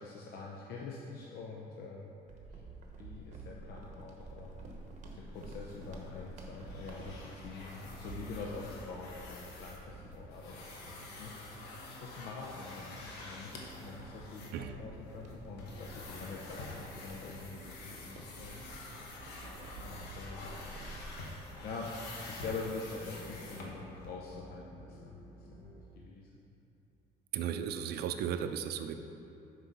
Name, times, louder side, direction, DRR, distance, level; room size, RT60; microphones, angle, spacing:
voice 1, 0.0-2.1 2.5-2.6 3.0-4.8 5.1-18.7 19.0-20.6 21.6-21.9 22.2-26.3, left 4 dB, 65° left, -2 dB, 0.7 m, -45 dB
sound 1, 2.3-12.1 12.6-12.8 13.4-21.0, right 3 dB, 45° right, 1.0 m, -51 dB
sound 2, 5.3-24.1, left 2 dB, 90° left, 1.0 m, -48 dB
sound 3, 8.1-25.9, right 1 dB, 10° left, 1.0 m, -54 dB
voice 2, 27.3-29.0, right 8 dB, 70° right, 8 dB, 0.5 m, -35 dB
5.9 x 4.8 x 5.4 m, 2.7 s
cardioid pair, 110°, 17 cm